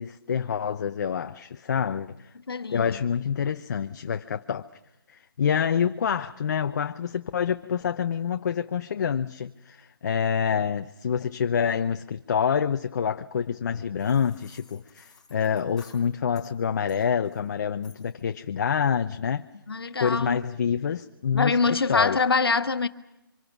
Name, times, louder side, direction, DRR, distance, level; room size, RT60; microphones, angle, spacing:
voice 1, 0.0-2.3 2.7-4.7 5.1-19.4 20.0-21.6 21.9-22.2, left 7 dB, 50° left, 0.8 m, -27 dB
voice 2, 2.5-3.0 19.7-20.4 21.3-22.9, left 4 dB, 85° left, 1.4 m, -24 dB
sound 1, 14.0-16.5 16.9-17.5 17.8-18.2, left 5 dB, 5° left, 4.1 m, -54 dB
27.5 x 25.5 x 6.1 m
hypercardioid pair, 155°, 12 cm